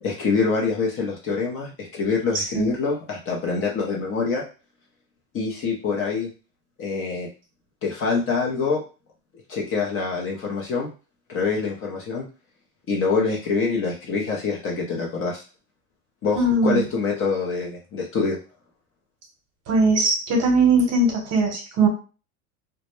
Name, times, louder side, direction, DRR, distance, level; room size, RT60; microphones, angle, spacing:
voice 1, 0.0-4.4 5.3-6.3 6.8-7.3 7.8-8.8 9.5-10.9 11.3-12.2 12.9-15.4 16.2-18.4, left 4 dB, 30° left, -1 dB, 0.6 m, -25 dB
voice 2, 2.3-2.7 16.4-16.8 19.7-21.9, right 2 dB, 35° right, 2 dB, 1.0 m, -20 dB
2.1 x 2.0 x 3.0 m, 0.34 s
hypercardioid pair, 110°, 43 cm